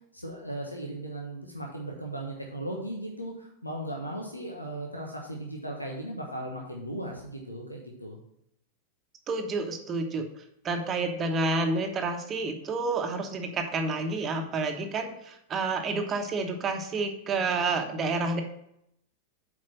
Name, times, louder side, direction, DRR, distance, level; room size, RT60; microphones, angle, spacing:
voice 1, 0.1-8.2, right 1 dB, 85° left, 0 dB, 1.2 m, -37 dB
voice 2, 9.3-10.2 10.6-18.4, right 3 dB, 25° right, 4 dB, 1.1 m, -29 dB
7.6 x 5.0 x 5.9 m, 0.76 s
figure-of-eight pair, 90°, 0 cm